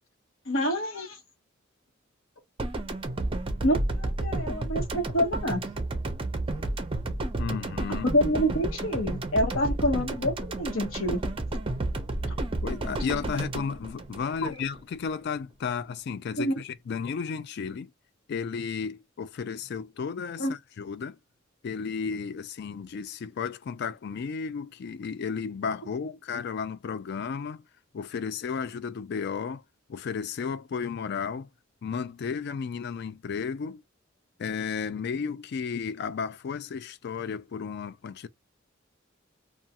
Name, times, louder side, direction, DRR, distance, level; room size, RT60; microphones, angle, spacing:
voice 1, 0.5-1.2 3.6-5.7 8.0-11.2 14.4-14.6 16.4-16.5 20.4-20.5, equal, 80° left, 1.1 m, -27 dB
sound 1, 2.6-14.8, right 2 dB, 25° right, 0.5 m, -31 dB
voice 2, 7.4-8.1 12.6-17.9 18.3-21.2 21.6-27.6 27.9-29.6 29.9-31.5 31.8-33.8 34.4-38.3, left 6 dB, 55° left, 0.3 m, -33 dB
2.3 x 2.3 x 2.8 m
head